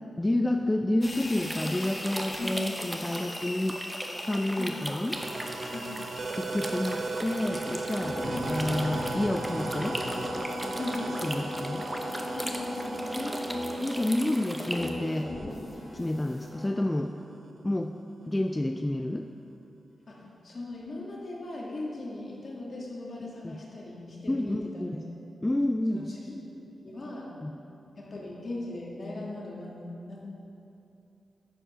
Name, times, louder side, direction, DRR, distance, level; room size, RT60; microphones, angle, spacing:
voice 1, 0.2-3.8 4.2-5.2 6.4-10.0 11.2-11.9 13.2-13.5 13.8-15.3 15.9-17.1 17.6-17.9 18.3-19.3 23.4-23.6 24.3-25.0 25.4-26.1 27.4-27.5, left 1 dB, 15° left, 4 dB, 0.3 m, -29 dB
sound 1, 1.0-16.7, left 1 dB, 30° left, 1.1 m, -38 dB
sound 2, 1.4-14.9, equal, 10° right, 0.8 m, -39 dB
voice 2, 2.3-2.7 4.6-4.7 5.7-5.9 8.3-8.5 10.8-11.5 12.3-13.9 20.1-25.0 25.9-26.3 26.8-27.3 28.0-30.2, left 2 dB, 55° left, -4 dB, 1.8 m, -39 dB
sound 3, 5.2-16.5, right 3 dB, 60° right, 0.6 m, -38 dB
9.7 x 5.2 x 4.9 m, 2.8 s
cardioid pair, 80°, 0 cm